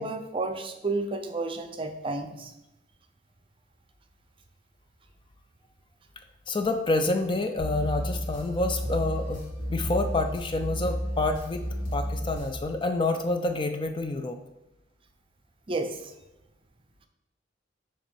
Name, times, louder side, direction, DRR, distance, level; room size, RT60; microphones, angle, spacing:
voice 1, 0.0-2.5 15.7-16.0, right 3 dB, 30° right, 6 dB, 0.5 m, -31 dB
voice 2, 6.5-9.4 9.7-11.6 11.9-14.4, left 2 dB, 25° left, 6 dB, 0.4 m, -28 dB
sound 1, 7.6-12.6, equal, 85° left, 1.8 m, -32 dB
6.9 x 3.0 x 4.5 m, 0.94 s
head